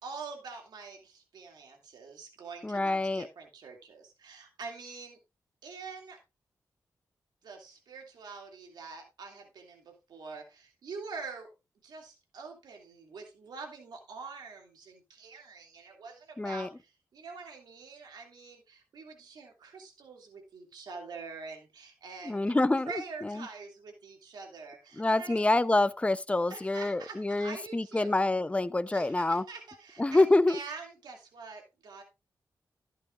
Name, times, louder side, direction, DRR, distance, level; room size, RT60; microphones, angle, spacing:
voice 1, 0.0-5.2 5.6-6.2 7.4-11.5 11.8-25.4 26.5-28.1 28.9-32.0, right 4 dB, 80° right, 2.5 m, -45 dB
voice 2, 2.6-3.3 16.4-16.7 22.2-22.9 23.2-23.5 25.0-29.4 30.0-30.6, left 2 dB, 15° left, 0.6 m, -26 dB
11.5 x 9.3 x 2.5 m
supercardioid pair, 45°, 7 cm